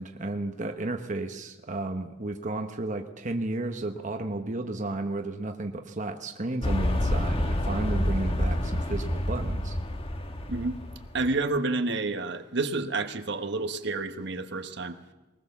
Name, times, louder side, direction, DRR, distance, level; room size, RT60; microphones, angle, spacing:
voice 1, 0.0-9.8, right 2 dB, 40° right, 5 dB, 1.1 m, -33 dB
sound 1, 6.6-11.4, left 1 dB, 30° left, 1.4 m, -28 dB
voice 2, 10.5-10.8 11.1-15.0, right 3 dB, 60° right, 8 dB, 1.3 m, -29 dB
21.5 x 19.5 x 7.2 m, 1.1 s
head